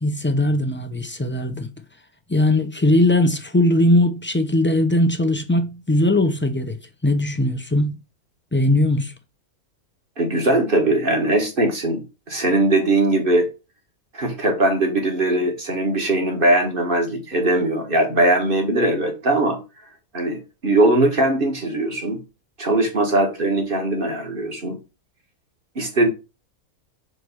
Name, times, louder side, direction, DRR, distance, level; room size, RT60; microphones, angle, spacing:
voice 1, 0.0-1.7 2.3-6.8 7.0-8.0 8.5-9.1, left 1 dB, 20° left, 0.3 m, -19 dB
voice 2, 10.2-13.5 14.1-19.6 20.1-22.2 22.6-24.8 25.8-26.1, right 2 dB, 35° right, 2.0 m, -20 dB
5.2 x 4.6 x 6.2 m
omnidirectional pair, 1.5 m